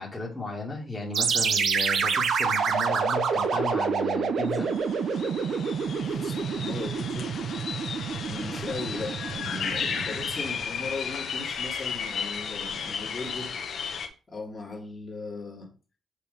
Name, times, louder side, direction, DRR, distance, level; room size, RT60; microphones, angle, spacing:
voice 1, 0.0-4.7, left 3 dB, 5° left, 1.9 m, -35 dB
sound 1, 1.1-10.7, right 6 dB, 50° right, 0.8 m, -28 dB
sound 2, 4.4-4.5 4.7-14.1, left 6 dB, 50° left, 1.2 m, -34 dB
voice 2, 6.0-7.4 8.2-13.6 14.3-15.7, left 3 dB, 25° left, 2.1 m, -38 dB
6.7 x 5.0 x 5.2 m
cardioid pair, 165°, 0 cm